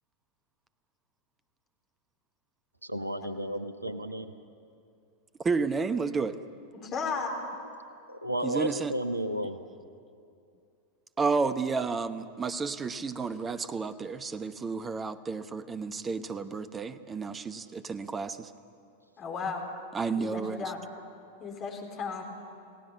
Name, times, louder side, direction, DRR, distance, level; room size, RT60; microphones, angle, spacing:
voice 1, 2.8-4.3 8.1-9.6, right 1 dB, 85° right, 10 dB, 1.0 m, -33 dB
voice 2, 5.4-6.4 8.4-9.0 11.2-18.5 19.9-20.7, right 4 dB, 20° right, 12 dB, 0.9 m, -31 dB
voice 3, 6.7-7.3 19.2-19.6 20.1-20.8 21.4-22.2, left 5 dB, 30° left, 2 dB, 3.7 m, -35 dB
29.0 x 17.0 x 7.2 m, 2.5 s
figure-of-eight pair, 90°, 0 cm